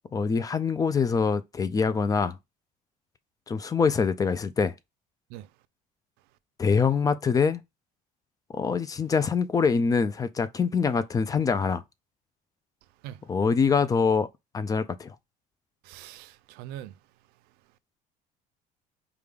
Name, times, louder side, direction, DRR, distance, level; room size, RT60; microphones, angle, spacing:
voice 1, 0.1-2.4 3.5-4.8 6.6-7.6 8.5-11.8 13.2-14.3 14.5-15.2, left 5 dB, 20° left, 0.4 m, -24 dB
voice 2, 15.8-16.9, right 12 dB, 80° right, 0.4 m, -42 dB
5.1 x 2.3 x 3.4 m
cardioid pair, 120°, 16 cm